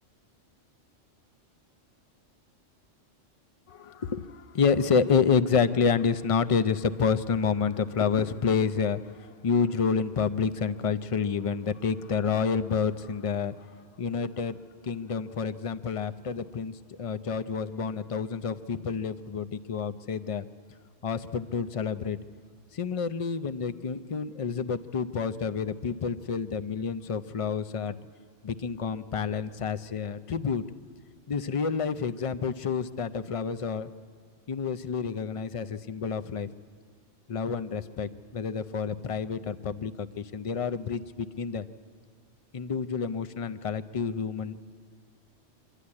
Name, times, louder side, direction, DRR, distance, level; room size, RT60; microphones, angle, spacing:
voice 1, 3.7-13.6 14.0-14.6 14.8-16.7 17.0-20.4 21.0-22.2 22.7-28.0 28.4-30.6 31.3-33.9 34.5-36.5 37.3-41.6 42.5-44.6, left 6 dB, 45° left, 12 dB, 0.4 m, -29 dB
26.0 x 11.5 x 9.7 m, 2.1 s
omnidirectional pair, 1.2 m